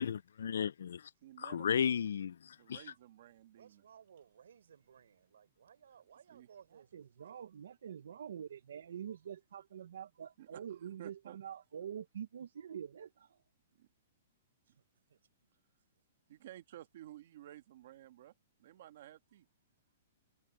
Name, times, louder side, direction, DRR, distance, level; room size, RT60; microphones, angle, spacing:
voice 1, 0.0-1.1 1.4-2.8, left 8 dB, 75° left, 0.3 m, -34 dB
voice 2, 1.2-1.9 2.6-3.8 6.3-6.5 10.4-10.6 11.0-11.4 13.8-13.9 16.3-18.3 18.6-19.4, right 13 dB, 45° right, 1.6 m, -54 dB
voice 3, 3.5-7.4 10.2-10.3 14.7-15.2 16.3-16.4, right 8 dB, 90° right, 4.1 m, -61 dB
voice 4, 6.7-13.4, right 9 dB, 70° right, 0.8 m, -46 dB
hypercardioid pair, 180°, 0 cm